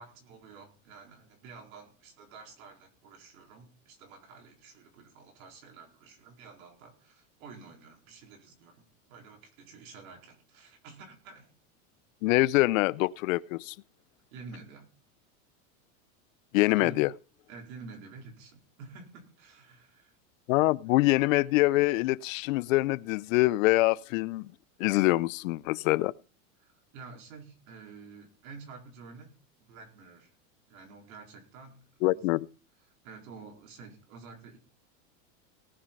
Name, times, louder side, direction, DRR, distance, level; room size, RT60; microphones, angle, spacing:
voice 1, 0.0-11.5 14.3-14.9 16.8-17.0 17.5-20.2 26.6-29.3 29.6-30.3 30.7-31.8 32.1-32.3 33.0-34.6, right 4 dB, 75° right, 4.4 m, -49 dB
voice 2, 12.2-13.8 16.5-17.1 20.5-24.5 24.8-26.1 32.0-32.5, left 20 dB, 70° left, 0.6 m, -25 dB
18.0 x 6.4 x 5.3 m
supercardioid pair, 140°, 41 cm